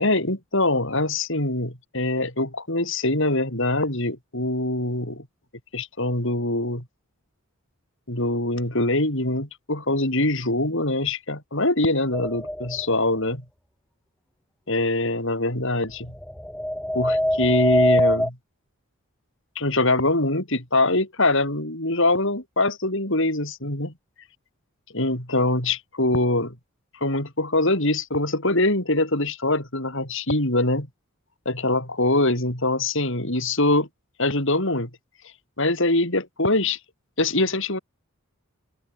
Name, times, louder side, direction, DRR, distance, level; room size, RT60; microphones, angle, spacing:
voice 1, 0.0-5.3 5.7-6.8 8.1-13.4 14.7-16.1 16.9-18.4 19.6-23.9 24.9-26.6 27.0-30.9 31.5-33.9 34.2-34.9 35.6-36.8 37.2-37.8, left 2 dB, 60° left, 7.4 m, -23 dB
sound 1, 12.1-12.8 16.1-18.3, equal, 5° left, 4.1 m, -23 dB
open air
head